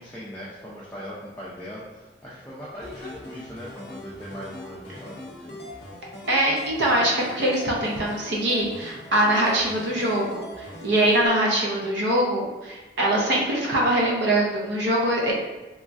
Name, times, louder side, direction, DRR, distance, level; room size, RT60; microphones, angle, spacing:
voice 1, 0.0-5.7, equal, 10° left, -8 dB, 0.4 m, -40 dB
sound 1, 2.8-11.3, left 1 dB, 60° left, 0.5 m, -41 dB
voice 2, 6.3-15.3, right 1 dB, 80° right, -3 dB, 0.6 m, -23 dB
3.0 x 2.3 x 2.5 m, 1.1 s
head